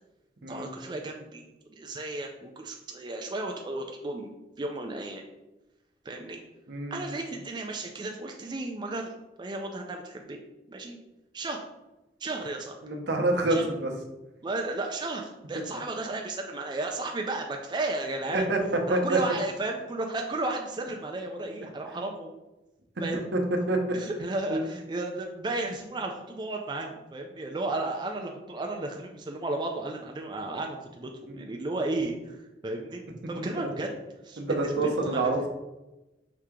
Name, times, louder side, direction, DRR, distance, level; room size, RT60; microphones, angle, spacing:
voice 1, 0.5-1.4 1.7-4.3 4.6-5.2 6.0-6.4 6.9-9.1 9.4-10.4 10.7-11.0 11.3-11.7 12.2-12.8 13.5-13.7 14.4-18.5 18.9-22.3 23.0-23.2 23.9-33.9 34.2-35.5, right 2 dB, 25° right, 2 dB, 0.4 m, -34 dB
voice 2, 6.7-7.1 12.8-13.9 15.6-15.7 18.3-18.6 18.9-19.2 23.3-23.4 23.7-23.8 24.5-24.7 31.3-31.5 33.6-33.7 34.4-35.5, right 2 dB, 70° right, 3 dB, 0.7 m, -27 dB
4.7 x 2.8 x 3.6 m, 1.0 s
head